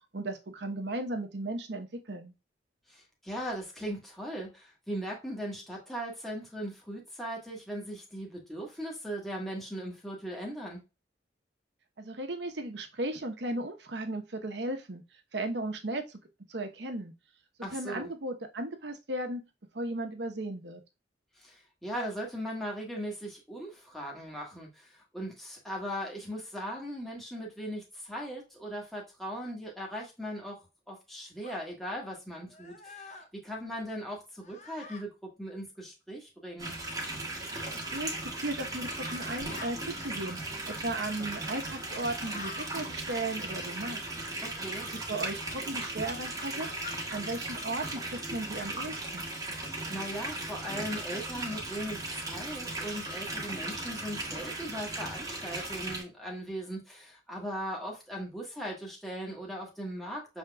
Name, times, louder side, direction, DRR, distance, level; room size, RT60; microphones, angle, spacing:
voice 1, 0.1-2.3 12.0-15.0 15.3-16.2 16.5-17.1 17.7-19.4 19.7-20.8 37.7-44.0 44.9-46.7 47.1-49.3, right 2 dB, 75° right, 5 dB, 1.0 m, -36 dB
voice 2, 2.9-10.8 17.6-18.1 21.4-30.6 30.9-35.1 35.4-36.7 44.4-44.9 49.9-60.4, equal, ahead, -2 dB, 1.3 m, -39 dB
sound 1, 31.4-31.6 32.5-33.3 34.4-35.0 36.8-37.0 37.9-38.1 38.8-39.7 41.5-42.7 44.6-44.7 45.4-45.6 46.5-47.0, left 3 dB, 40° left, 0.7 m, -47 dB
sound 2, 36.6-56.0, right 2 dB, 20° right, 1.2 m, -37 dB
6.4 x 3.6 x 2.3 m, 0.27 s
head